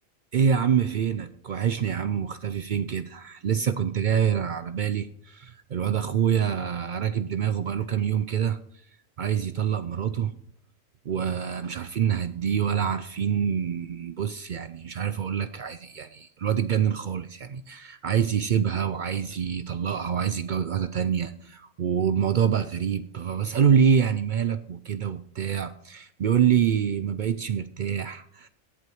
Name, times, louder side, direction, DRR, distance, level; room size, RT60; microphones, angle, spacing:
voice 1, 0.3-8.6 9.2-10.3 11.1-28.5, right 8 dB, 60° right, 12 dB, 0.5 m, -26 dB
17.0 x 7.8 x 3.1 m, 0.64 s
omnidirectional pair, 1.2 m